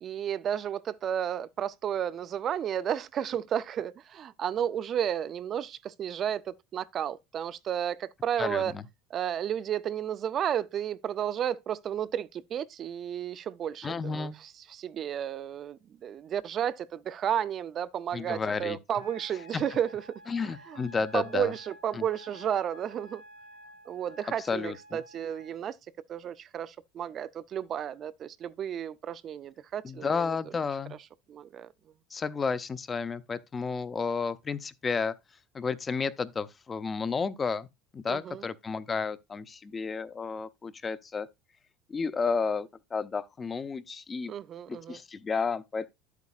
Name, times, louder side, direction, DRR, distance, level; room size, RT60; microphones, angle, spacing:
voice 1, 0.0-8.7 9.1-20.2 20.7-20.8 21.1-23.2 23.9-25.8 26.1-30.4 31.3-31.7 38.1-38.5 44.3-45.0, right 9 dB, 35° right, 0.4 m, -32 dB
voice 2, 8.4-8.8 13.8-14.4 18.1-18.8 19.5-19.6 20.3-21.5 21.9-22.0 24.4-25.0 29.8-31.0 32.1-35.1 35.5-37.7 37.9-41.3 41.9-44.3 44.7-45.9, left 5 dB, 20° left, 0.5 m, -32 dB
Wind instrument woodwind instrument, 19.0-25.6, equal, 90° left, 3.0 m, -51 dB
10.5 x 8.2 x 2.4 m
cardioid pair, 150°, 0 cm